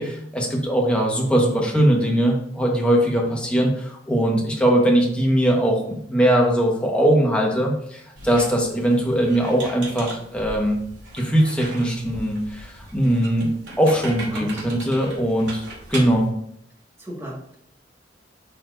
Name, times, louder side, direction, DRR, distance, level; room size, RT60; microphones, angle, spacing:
voice 1, 0.0-10.8 11.1-13.5 13.8-16.3, right 1 dB, 5° left, -2 dB, 1.3 m, -20 dB
Squeak, 8.2-16.3, right 2 dB, 85° right, 2.7 m, -38 dB
voice 2, 14.3-14.7 17.0-17.6, right 1 dB, 15° right, -6 dB, 1.8 m, -36 dB
10.5 x 4.3 x 2.6 m, 0.69 s
head